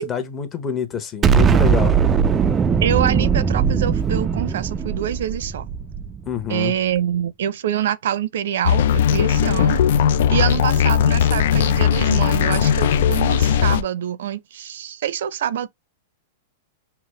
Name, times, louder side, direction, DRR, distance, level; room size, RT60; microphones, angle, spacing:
voice 1, 0.0-1.9 6.3-6.7, left 8 dB, 20° left, 0.9 m, -26 dB
Explosion, 1.2-6.4, right 6 dB, 20° right, 0.3 m, -19 dB
voice 2, 2.8-5.7 6.5-9.8 10.3-15.7, right 10 dB, 75° right, 0.6 m, -25 dB
sound 1, 8.6-13.8, left 8 dB, 65° left, 0.4 m, -18 dB
5.8 x 2.1 x 3.1 m
hypercardioid pair, 140°, 0 cm